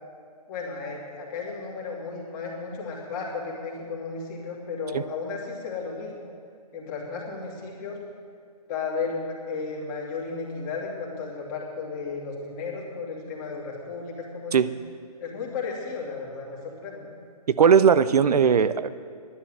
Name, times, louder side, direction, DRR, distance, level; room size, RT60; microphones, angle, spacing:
voice 1, 0.5-6.1 6.7-8.0 8.7-14.6 15.2-17.1, left 4 dB, 30° left, -3 dB, 2.8 m, -34 dB
voice 2, 17.5-18.9, right 7 dB, 70° right, 14 dB, 0.6 m, -18 dB
11.0 x 11.0 x 8.0 m, 2.2 s
hypercardioid pair, 155°, 20 cm